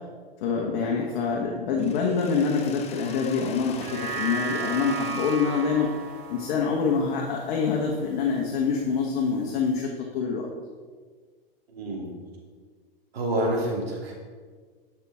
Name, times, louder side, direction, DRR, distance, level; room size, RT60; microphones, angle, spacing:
voice 1, 0.4-5.9 6.3-10.5, left 5 dB, 55° left, -1 dB, 1.4 m, -26 dB
Mechanisms, 1.8-7.6, left 7 dB, 20° left, 0.6 m, -45 dB
sound 1, 3.7-8.3 8.7-8.8, right 6 dB, 55° right, 1.5 m, -35 dB
voice 2, 11.7-12.1 13.1-14.1, right 1 dB, 80° right, -2 dB, 2.8 m, -28 dB
12.5 x 5.9 x 3.6 m, 1.5 s
hypercardioid pair, 115°, 30 cm